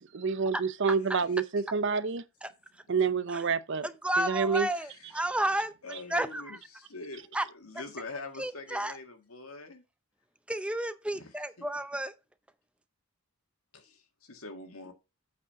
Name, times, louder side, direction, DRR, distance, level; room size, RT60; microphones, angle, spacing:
voice 1, 0.1-2.2 2.9-3.9 4.2-4.7, right 5 dB, 55° right, 0.6 m, -28 dB
voice 2, 1.3-1.6 4.7-5.1 5.8-9.8 11.1-11.3 11.6-11.7 13.7-14.9, left 3 dB, 75° left, 2.0 m, -44 dB
voice 3, 3.8-5.7 6.1-6.6 7.3-7.5 8.4-9.0 10.5-12.1, right 1 dB, 5° right, 0.5 m, -31 dB
8.4 x 4.9 x 5.8 m
head